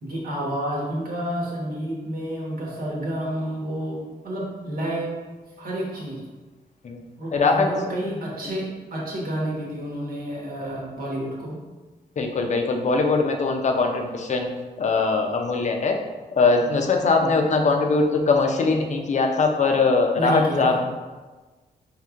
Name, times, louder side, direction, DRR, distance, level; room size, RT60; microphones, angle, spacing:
voice 1, 0.0-6.1 7.2-8.6 8.9-11.6 17.0-17.3 20.2-20.8, right 1 dB, 65° right, -4 dB, 1.2 m, -30 dB
voice 2, 7.3-7.7 8.1-8.2 12.2-14.5 14.8-16.0 16.4-20.8, left 4 dB, 45° left, 3 dB, 0.5 m, -21 dB
4.5 x 3.2 x 2.4 m, 1.3 s
cardioid pair, 100°, 16 cm